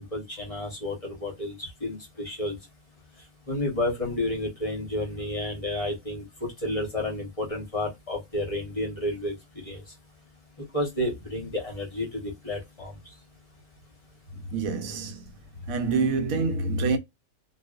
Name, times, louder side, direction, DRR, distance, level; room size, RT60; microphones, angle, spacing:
voice 1, 0.0-2.6 3.5-9.9 10.6-12.9, left 1 dB, 30° left, 0.7 m, -31 dB
voice 2, 14.5-15.3 15.7-17.0, right 4 dB, 75° right, 1.0 m, -26 dB
2.4 x 2.3 x 2.2 m
omnidirectional pair, 1.5 m